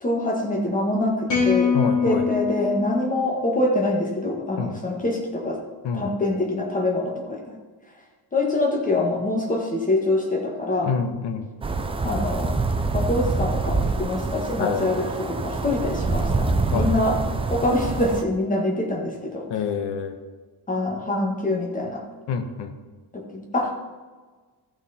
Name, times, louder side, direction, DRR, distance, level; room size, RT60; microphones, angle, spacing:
voice 1, 0.0-1.7 2.0-5.6 5.9-7.4 8.3-10.9 12.0-12.6 12.9-16.5 16.7-17.2 17.5-19.5 20.7-22.0 23.1-23.7, left 2 dB, 20° left, 0 dB, 1.7 m, -25 dB
sound 1, 1.3-3.7, left 6 dB, 45° left, 3.6 m, -24 dB
voice 2, 1.7-2.3 4.6-4.8 5.8-6.1 10.8-11.5 14.6-15.2 16.7-17.2 19.5-20.2 22.3-22.7, left 6 dB, 90° left, 7 dB, 1.3 m, -27 dB
sound 2, 11.6-18.2, right 3 dB, 15° right, 0.4 m, -25 dB
14.0 x 6.1 x 4.3 m, 1.4 s
cardioid pair, 165°, 41 cm